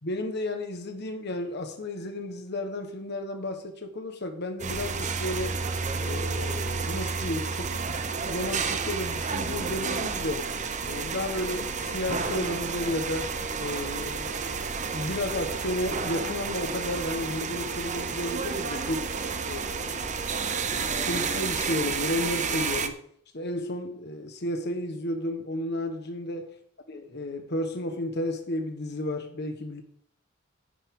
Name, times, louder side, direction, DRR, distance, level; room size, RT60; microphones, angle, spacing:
voice 1, 0.0-5.6 6.0-8.0 8.3-10.5 10.9-13.3 13.6-14.4 14.9-19.1 19.5-20.1 21.1-23.0 23.3-26.6 26.9-29.8, left 1 dB, 55° left, 1.5 m, -32 dB
sound 1, 4.6-22.9, right 5 dB, 40° right, 0.9 m, -31 dB
11.0 x 10.5 x 3.9 m
head